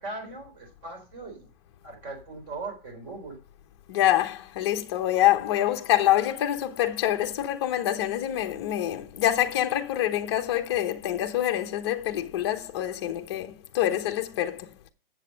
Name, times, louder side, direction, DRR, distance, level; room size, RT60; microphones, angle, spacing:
voice 1, 0.0-1.5 1.8-3.4, right 3 dB, 20° right, 3.6 m, -39 dB
voice 2, 3.9-14.7, left 12 dB, 30° left, 0.9 m, -26 dB
7.8 x 6.6 x 6.4 m
hypercardioid pair, 165°, 29 cm